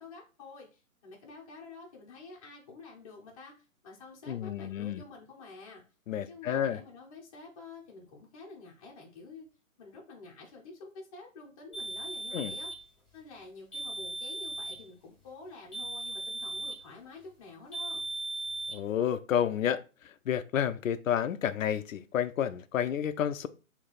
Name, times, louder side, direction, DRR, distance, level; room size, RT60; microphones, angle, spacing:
voice 1, 0.0-5.8 6.3-9.5 9.8-12.7 13.1-18.1, left 3 dB, 25° left, 0.7 m, -49 dB
voice 2, 4.3-5.0 6.1-6.8 12.3-12.5 18.7-23.5, left 9 dB, 65° left, 0.5 m, -30 dB
sound 1, 11.7-12.8 13.7-14.8 15.7-16.9 17.7-18.8, right 2 dB, ahead, 1.6 m, -37 dB
3.2 x 2.9 x 3.9 m
hypercardioid pair, 150°, 43 cm